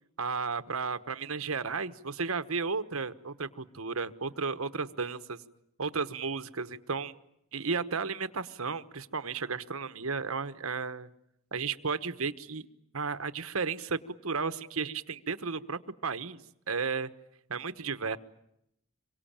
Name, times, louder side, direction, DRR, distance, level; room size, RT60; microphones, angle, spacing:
voice 1, 0.2-5.4 5.8-7.2 7.5-11.1 11.5-12.7 12.9-17.1 17.5-18.2, right 5 dB, 75° right, 11 dB, 1.2 m, -33 dB
26.5 x 23.5 x 8.9 m, 0.78 s
head